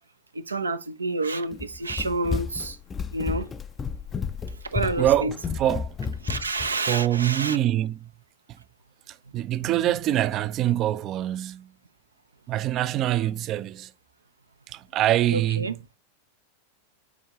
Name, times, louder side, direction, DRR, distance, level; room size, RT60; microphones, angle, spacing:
voice 1, 0.3-2.8 3.1-3.5 4.7-5.3 6.2-7.6 15.3-15.7, right 2 dB, 75° right, 0.6 m, -28 dB
Run, 1.5-6.7, left 5 dB, 20° left, 0.5 m, -32 dB
voice 2, 5.0-5.9 6.9-8.1 9.1-11.7 12.5-13.9 14.7-15.8, right 13 dB, 35° right, 0.4 m, -25 dB
8.2 x 4.5 x 2.9 m
figure-of-eight pair, 90°, 0 cm